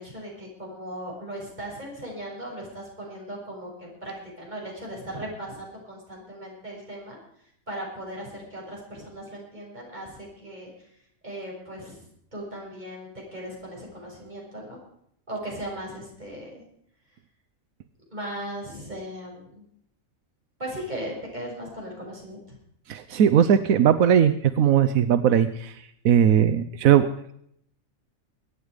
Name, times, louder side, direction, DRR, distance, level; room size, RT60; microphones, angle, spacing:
voice 1, 0.0-7.2 7.7-10.9 11.2-12.0 12.3-14.8 15.3-16.6 18.1-19.6 20.6-22.6, right 1 dB, 30° right, -3 dB, 6.7 m, -37 dB
voice 2, 22.9-27.3, right 9 dB, 85° right, 11 dB, 1.2 m, -19 dB
23.0 x 9.7 x 5.0 m, 0.69 s
omnidirectional pair, 1.4 m